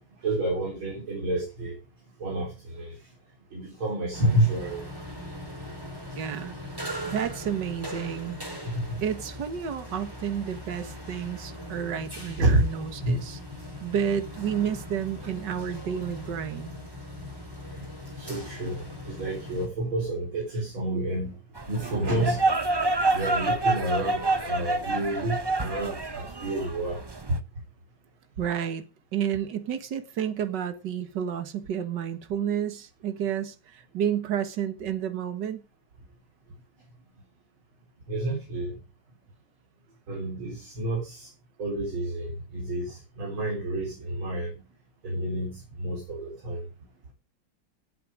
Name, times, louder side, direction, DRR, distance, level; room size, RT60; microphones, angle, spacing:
voice 1, 0.0-1.8 2.2-3.0 3.5-4.8 8.7-9.0 12.4-12.7 13.0-13.2 17.8-17.9 18.2-21.4 21.7-22.4 23.1-27.0 27.3-27.4 38.1-38.7 40.1-41.3 41.6-44.5 45.0-46.6, right 1 dB, 80° right, 4.6 m, -29 dB
sound 1, 4.1-19.7, equal, 10° right, 3.9 m, -40 dB
voice 2, 6.2-8.4 9.0-13.4 13.8-16.7 28.4-28.8 29.1-35.6, right 8 dB, 60° right, 2.1 m, -31 dB
sound 2, 21.6-27.4, right 2 dB, 40° right, 0.3 m, -27 dB
17.5 x 7.9 x 5.1 m
omnidirectional pair, 2.2 m